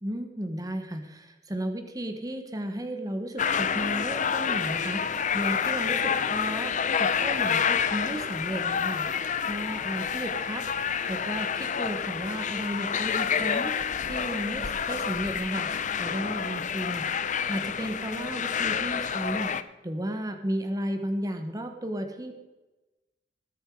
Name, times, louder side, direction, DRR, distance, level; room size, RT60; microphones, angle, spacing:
voice 1, 0.0-10.6 11.1-15.7 16.0-17.1 17.5-19.5 19.8-22.4, right 1 dB, 20° right, 5 dB, 1.3 m, -34 dB
sound 1, 3.4-19.6, left 7 dB, 45° left, 0.6 m, -28 dB
19.5 x 7.9 x 4.8 m, 1.1 s
head